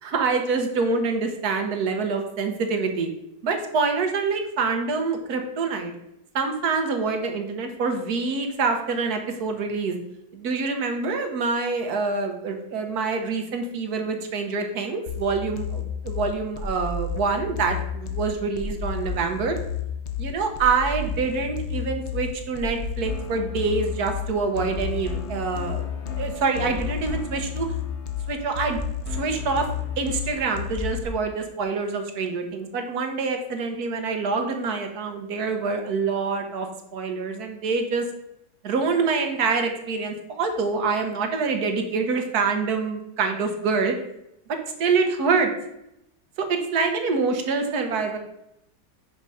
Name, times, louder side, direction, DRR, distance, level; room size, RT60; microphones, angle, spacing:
voice 1, 0.0-3.1 3.4-5.9 6.3-10.0 10.3-19.6 20.2-25.9 26.2-27.7 28.3-28.8 29.1-29.7 30.0-38.0 38.6-43.9 44.8-45.5 46.5-48.2, right 4 dB, 65° right, 5 dB, 1.4 m, -26 dB
sound 1, 15.1-31.1, left 6 dB, 55° left, 0.8 m, -31 dB
5.6 x 5.3 x 4.7 m, 0.83 s
omnidirectional pair, 1.9 m